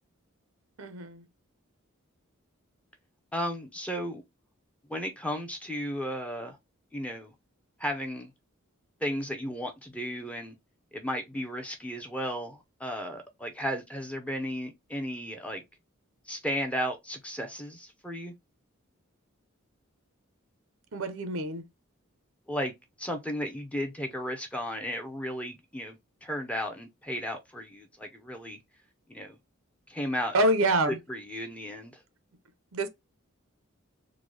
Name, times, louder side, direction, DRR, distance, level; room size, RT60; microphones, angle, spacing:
voice 1, 0.8-1.3 20.9-21.6 30.3-31.0 32.7-32.9, right 1 dB, 75° right, 0.7 m, -26 dB
voice 2, 3.3-4.2 4.9-6.6 6.9-7.3 7.8-8.3 9.0-10.5 10.9-15.6 16.3-18.3 22.5-22.7 23.0-28.6 29.1-29.4 29.9-30.3 31.1-32.0, equal, 5° left, 0.7 m, -34 dB
3.8 x 2.3 x 3.2 m
head